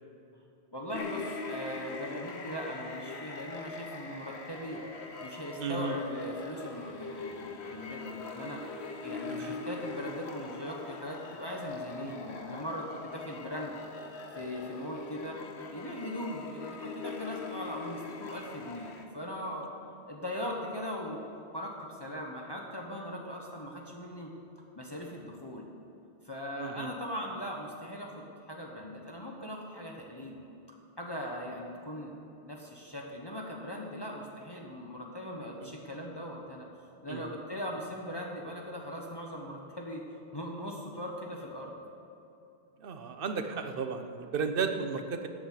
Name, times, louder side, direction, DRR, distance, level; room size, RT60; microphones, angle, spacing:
voice 1, 0.7-4.8 5.2-13.7 14.4-15.3 15.7-19.7 20.1-21.2 21.5-24.3 24.8-25.7 26.2-30.4 31.0-32.1 32.4-36.7 37.0-41.7, equal, 25° left, -1 dB, 1.2 m, -39 dB
sound 1, 0.9-19.1, left 4 dB, 80° left, 1.3 m, -42 dB
voice 2, 5.6-5.9 9.3-9.5 26.6-26.9 35.6-35.7 37.1-37.2 42.8-45.3, right 5 dB, 60° right, 7 dB, 1.1 m, -34 dB
14.0 x 8.8 x 6.7 m, 2.9 s
omnidirectional pair, 1.1 m